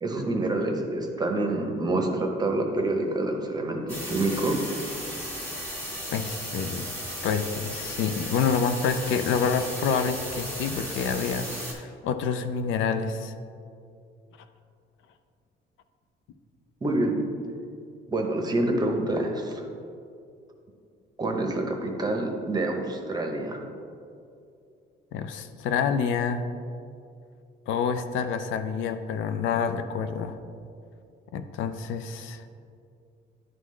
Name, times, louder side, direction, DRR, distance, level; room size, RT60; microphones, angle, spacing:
voice 1, 0.0-4.6 16.8-17.2 18.1-19.7 21.2-23.6, right 2 dB, 20° right, 2 dB, 0.7 m, -27 dB
sound 1, 3.9-11.7, equal, 10° left, 1.6 m, -35 dB
voice 2, 6.1-6.9 7.2-13.3 25.1-26.5 27.7-30.4 31.3-32.4, left 6 dB, 80° left, 9 dB, 0.5 m, -28 dB
11.0 x 3.8 x 3.2 m, 2.5 s
cardioid pair, 150°, 20 cm